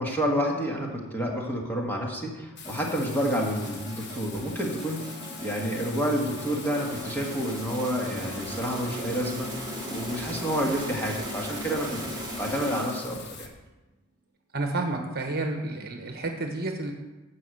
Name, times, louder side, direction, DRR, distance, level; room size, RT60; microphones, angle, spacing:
voice 1, 0.0-13.5, equal, 10° left, -1 dB, 1.6 m, -29 dB
Bathtub (filling or washing), 2.6-13.5, left 6 dB, 50° left, 1.2 m, -43 dB
sound 1, 2.6-13.3, equal, 20° right, 1.8 m, -38 dB
voice 2, 14.5-16.9, right 2 dB, 45° right, 4 dB, 1.2 m, -30 dB
12.5 x 4.9 x 7.7 m, 1.1 s
head